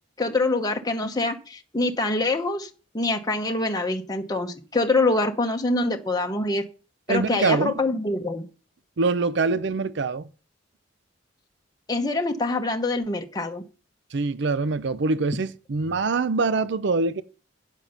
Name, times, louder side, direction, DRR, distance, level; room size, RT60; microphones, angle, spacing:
voice 1, 0.2-6.6 7.1-8.5 11.9-13.6, left 2 dB, 20° left, 1.0 m, -25 dB
voice 2, 7.1-7.7 9.0-10.3 14.1-17.2, right 3 dB, 70° right, 0.6 m, -24 dB
9.1 x 7.1 x 5.6 m
head